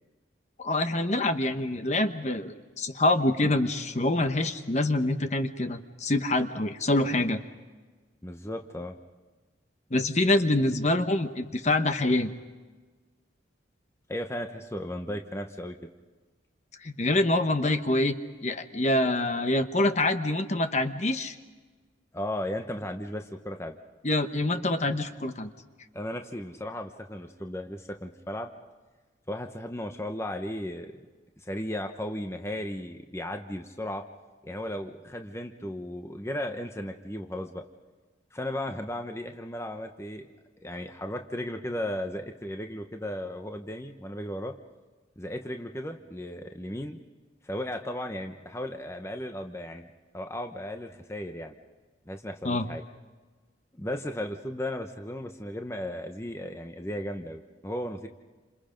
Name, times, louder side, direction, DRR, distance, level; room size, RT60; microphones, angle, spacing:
voice 1, 0.6-7.4 9.9-12.3 16.8-21.4 24.0-25.5 52.4-52.7, left 2 dB, 40° left, 8 dB, 1.1 m, -26 dB
voice 2, 8.2-9.0 14.1-15.9 22.1-23.8 25.9-28.5 29.3-31.0 31.4-34.0 34.4-37.6 38.3-40.3 40.6-44.5 45.2-47.0 47.4-49.9 50.1-51.5 52.1-52.8 53.7-58.1, left 1 dB, 15° left, 5 dB, 0.9 m, -35 dB
29.0 x 27.0 x 5.2 m, 1.3 s
head